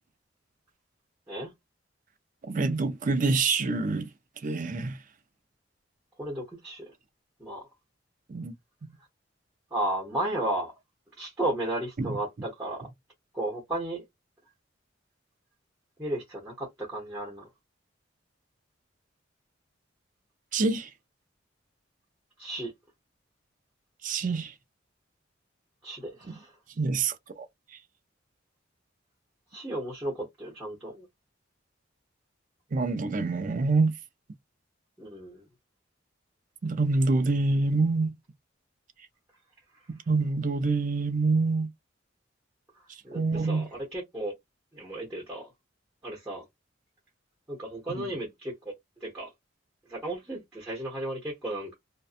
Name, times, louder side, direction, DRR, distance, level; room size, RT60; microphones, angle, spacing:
voice 1, 2.4-4.1 4.4-5.0 8.3-8.5 12.0-12.2 20.5-20.9 24.0-24.5 26.3-26.4 26.8-27.5 27.7-27.8 32.7-33.9 36.6-38.1 39.9-41.7 42.9-43.7 47.9-48.1, right 3 dB, 45° right, 0.4 m, -26 dB
voice 2, 6.2-6.9 7.4-7.7 9.7-10.7 11.2-12.9 13.3-14.0 16.0-17.5 22.4-22.7 25.8-26.6 29.5-31.1 35.0-35.5 42.7-44.3 44.7-45.5 46.0-46.4 47.5-48.7 49.0-49.3 49.9-51.7, right 1 dB, 15° right, 0.9 m, -34 dB
2.5 x 2.2 x 2.4 m
head